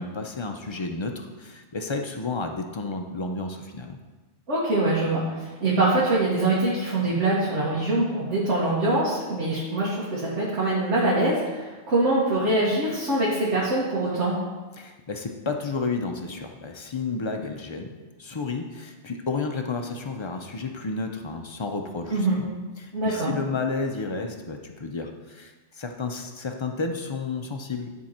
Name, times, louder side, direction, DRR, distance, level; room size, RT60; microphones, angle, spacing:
voice 1, 0.0-4.0 14.8-17.9 18.2-22.4 22.8-27.9, left 4 dB, 40° left, 4 dB, 0.4 m, -31 dB
voice 2, 4.5-14.4 22.1-22.4 22.9-23.3, right 2 dB, 70° right, -7 dB, 1.7 m, -24 dB
10.5 x 3.7 x 4.3 m, 1.2 s
omnidirectional pair, 1.2 m